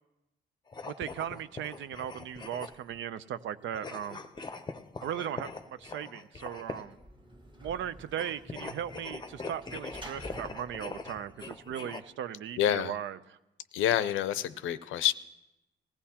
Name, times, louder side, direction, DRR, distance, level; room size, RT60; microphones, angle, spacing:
sound 1, 0.7-3.0 3.7-7.0 8.1-12.0, left 4 dB, 20° left, 0.7 m, -42 dB
voice 1, 0.8-4.2 5.0-7.0 7.6-13.4, right 9 dB, 70° right, 14 dB, 0.6 m, -38 dB
Sliding door / Slam, 6.7-12.1, right 1 dB, 25° right, 1.5 m, -50 dB
voice 2, 12.6-12.9 13.7-15.1, left 11 dB, 85° left, 14 dB, 0.6 m, -27 dB
20.0 x 15.0 x 2.9 m, 0.93 s
cardioid pair, 90°, 20 cm